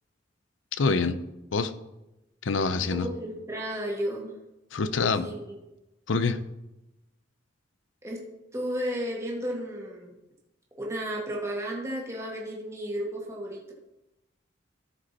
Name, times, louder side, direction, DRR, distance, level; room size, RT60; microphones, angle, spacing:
voice 1, 0.7-1.2 1.5-1.7 2.4-3.1 4.7-5.3 6.1-6.4, left 4 dB, 85° left, 12 dB, 0.6 m, -25 dB
voice 2, 2.7-4.3 5.0-5.4 8.0-8.2 8.5-10.2 10.8-13.7, equal, 15° right, -3 dB, 1.7 m, -33 dB
13.0 x 5.1 x 4.2 m, 0.96 s
head